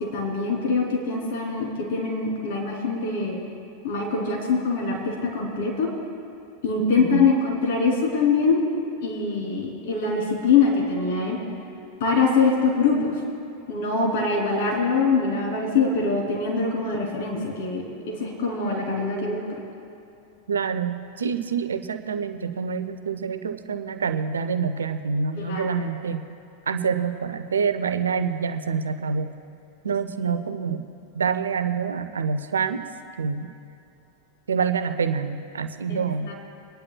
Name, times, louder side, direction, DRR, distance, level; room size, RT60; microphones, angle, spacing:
voice 1, 0.1-3.4 3.8-5.9 6.6-8.6 9.0-11.4 12.0-13.1 13.7-19.4 25.5-25.6 30.2-30.3 35.9-36.0 36.3-36.4, left 4 dB, 55° left, -2 dB, 3.2 m, -23 dB
voice 2, 7.0-7.3 20.5-26.3 26.7-29.3 29.8-30.9 31.1-32.9 33.2-33.5 34.5-36.3, right 6 dB, 70° right, 9 dB, 0.6 m, -26 dB
27.5 x 11.0 x 2.3 m, 2.7 s
figure-of-eight pair, 90°, 0 cm